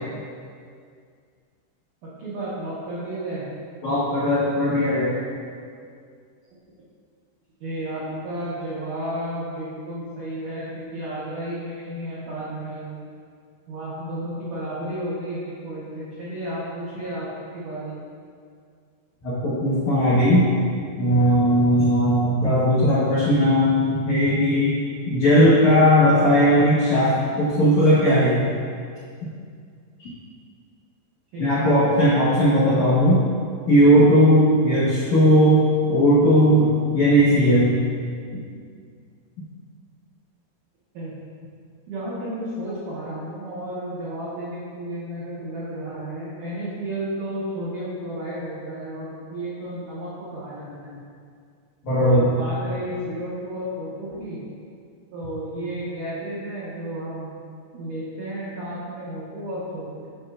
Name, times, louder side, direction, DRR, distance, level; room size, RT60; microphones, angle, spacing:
voice 1, 2.0-3.5 7.6-13.0 13.7-17.3 17.5-17.9 31.3-31.9 40.9-41.1 41.9-51.0 52.0-54.4 55.1-57.4 57.7-60.1, right 1 dB, 85° right, -9 dB, 1.8 m, -32 dB
voice 2, 3.8-5.2 19.2-20.5 20.9-24.8 25.1-28.4 30.0-30.1 31.4-33.2 33.7-35.6 35.9-37.7 51.8-52.3, equal, 80° left, -11 dB, 1.6 m, -17 dB
9.7 x 6.7 x 2.5 m, 2.2 s
omnidirectional pair, 5.7 m